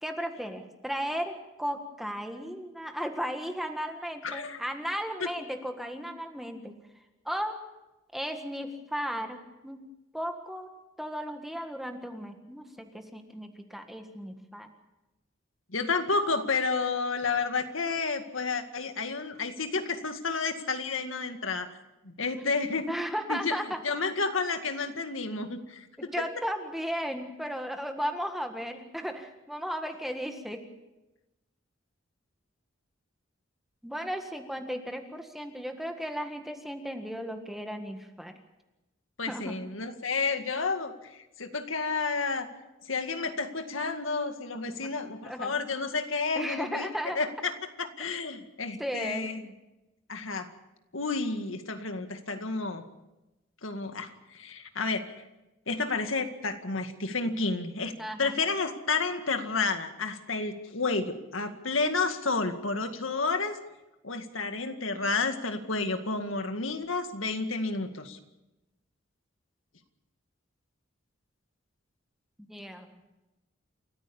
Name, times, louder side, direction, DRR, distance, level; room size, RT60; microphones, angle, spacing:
voice 1, 0.0-6.7 7.2-7.6 8.1-9.8 10.1-10.7 11.0-14.7 22.2-22.6 22.9-23.8 26.0-30.6 33.8-38.3 39.3-39.5 44.5-44.9 45.2-45.5 46.3-47.2 48.8-49.3 58.0-58.4 72.4-72.9, equal, ahead, 5 dB, 1.6 m, -35 dB
voice 2, 4.2-4.6 5.2-5.3 15.7-21.7 22.0-22.9 23.3-23.5 23.8-26.1 39.2-42.5 42.8-46.9 47.1-49.5 50.1-50.5 50.9-52.8 53.6-55.0 55.7-57.9 58.2-63.6 64.0-68.2, left 4 dB, 90° left, 7 dB, 2.1 m, -31 dB
29.0 x 14.5 x 7.1 m, 0.99 s
head